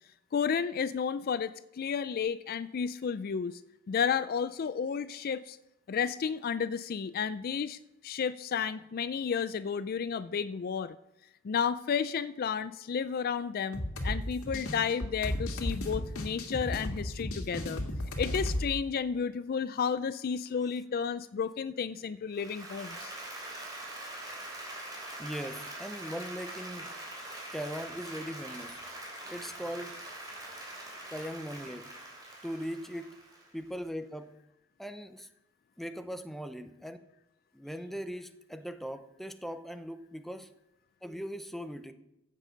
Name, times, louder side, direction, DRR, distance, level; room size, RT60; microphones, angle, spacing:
voice 1, 0.3-3.6 3.9-5.6 5.9-11.0 11.4-17.8 18.2-23.1, left 6 dB, 45° left, 14 dB, 0.3 m, -32 dB
sound 1, 13.7-18.7, left 1 dB, 90° left, 2.0 m, -34 dB
Applause, 22.3-33.7, right 1 dB, 20° right, 3.2 m, -43 dB
voice 2, 25.2-26.9 27.5-28.8 29.3-30.0 31.1-31.9 32.4-33.2 33.5-34.3 34.8-35.3 35.8-37.0 37.5-40.5 41.0-41.9, equal, ahead, 9 dB, 0.6 m, -39 dB
15.0 x 7.6 x 5.1 m, 0.87 s
head